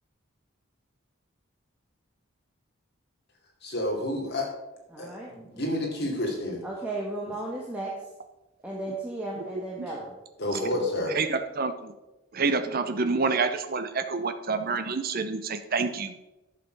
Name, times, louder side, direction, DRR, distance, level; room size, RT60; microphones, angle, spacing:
voice 1, 3.6-4.5 5.0-6.6 10.4-11.1, left 1 dB, 50° left, -1 dB, 2.8 m, -29 dB
voice 2, 4.9-5.3 6.6-8.1 8.6-10.2, right 2 dB, 5° right, -4 dB, 1.4 m, -35 dB
voice 3, 9.4-9.9 11.1-11.9 12.3-16.2, right 4 dB, 45° right, 8 dB, 0.7 m, -28 dB
11.0 x 6.7 x 5.3 m, 0.98 s
head